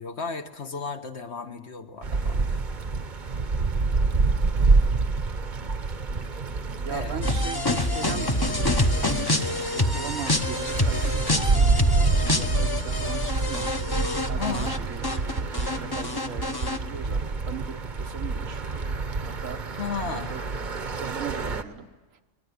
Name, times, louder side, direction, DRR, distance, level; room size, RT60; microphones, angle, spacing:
voice 1, 0.0-2.6 6.9-7.2 14.4-14.8 19.8-20.3, left 5 dB, 55° left, 6 dB, 1.6 m, -34 dB
sound 1, 2.0-21.6, right 4 dB, 40° right, 1.1 m, -27 dB
voice 2, 6.8-20.4 20.9-21.9, right 7 dB, 80° right, 7 dB, 1.5 m, -40 dB
sound 2, 7.2-14.8 15.0-16.8, left 2 dB, 20° left, 0.9 m, -26 dB
23.5 x 20.0 x 9.8 m, 1.2 s
omnidirectional pair, 1.3 m